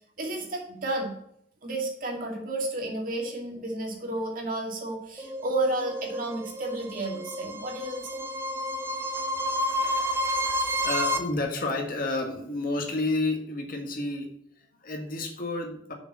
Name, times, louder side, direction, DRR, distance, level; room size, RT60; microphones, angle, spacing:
voice 1, 0.2-1.1 1.6-8.2, right 2 dB, 45° right, 0 dB, 2.4 m, -32 dB
sound 1, 5.2-11.2, equal, 15° right, 0.9 m, -30 dB
voice 2, 9.6-15.9, left 2 dB, 50° left, 2 dB, 1.8 m, -31 dB
6.8 x 6.8 x 7.5 m, 0.72 s
head